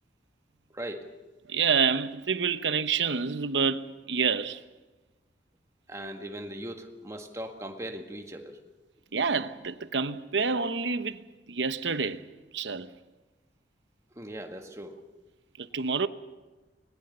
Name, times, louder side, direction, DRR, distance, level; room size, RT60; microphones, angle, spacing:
voice 1, 0.7-1.1 5.9-8.6 14.1-15.0, right 1 dB, 15° right, 1.8 m, -39 dB
voice 2, 1.5-4.6 9.1-11.2 11.5-12.2 12.5-12.9 15.6-16.1, right 5 dB, 75° right, 0.9 m, -28 dB
21.0 x 20.5 x 6.8 m
head